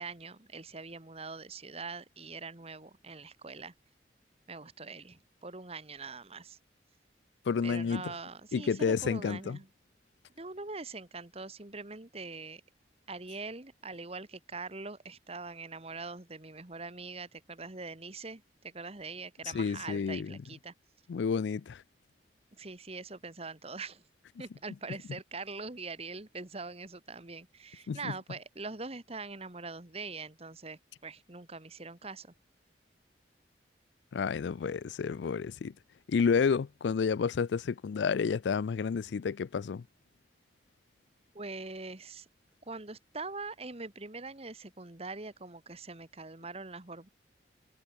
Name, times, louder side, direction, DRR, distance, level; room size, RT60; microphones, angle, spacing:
voice 1, 0.0-3.7 4.5-6.6 7.6-9.7 10.4-12.6 13.1-20.7 22.5-24.0 24.4-32.3 41.3-42.3 42.7-47.1, right 3 dB, 35° right, 1.8 m, -43 dB
voice 2, 7.5-8.0 8.5-9.6 19.5-20.4 21.1-21.8 27.9-28.1 34.1-35.7 36.1-39.8, left 5 dB, 75° left, 0.4 m, -30 dB
head